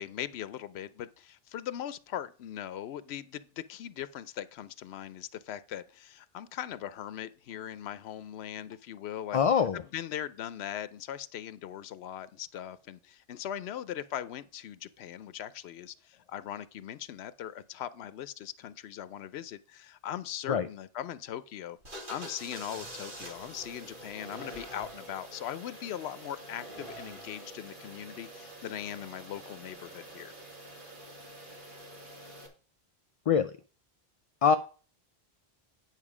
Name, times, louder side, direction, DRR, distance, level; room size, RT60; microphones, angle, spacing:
voice 1, 0.0-9.4 9.7-30.3, left 10 dB, 85° left, 0.8 m, -40 dB
voice 2, 9.3-9.8 20.5-20.7 33.3-33.5 34.4-34.5, left 7 dB, 50° left, 0.4 m, -24 dB
sound 1, 21.8-32.5, right 1 dB, 55° right, 2.2 m, -46 dB
9.2 x 6.0 x 4.9 m
omnidirectional pair, 1.0 m